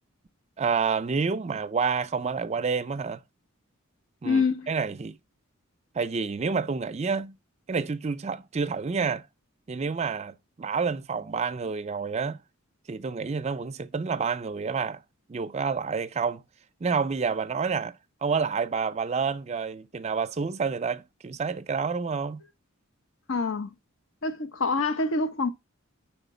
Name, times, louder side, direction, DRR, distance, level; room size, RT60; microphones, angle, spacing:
voice 1, 0.6-3.2 4.2-5.2 5.9-7.3 7.7-9.3 9.7-12.4 12.9-15.0 15.3-16.4 16.8-22.4, right 5 dB, 30° right, 0.4 m, -29 dB
voice 2, 4.2-4.7 23.3-23.7 24.2-25.5, left 3 dB, 65° left, 0.7 m, -26 dB
5.0 x 4.4 x 5.5 m
head